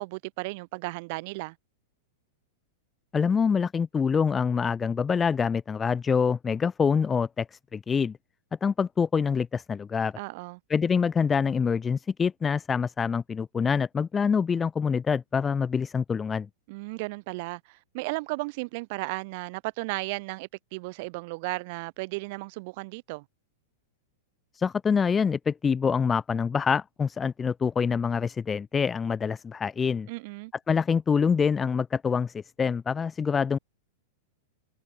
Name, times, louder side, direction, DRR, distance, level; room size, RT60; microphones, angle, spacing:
voice 1, 0.0-1.6 10.2-10.6 16.7-23.2 30.1-30.5, right 26 dB, 55° right, 4.2 m, -35 dB
voice 2, 3.1-8.2 8.6-10.1 10.7-16.5 24.5-30.1 30.7-33.6, left 6 dB, 20° left, 1.9 m, -25 dB
hypercardioid pair, 105°, 0 cm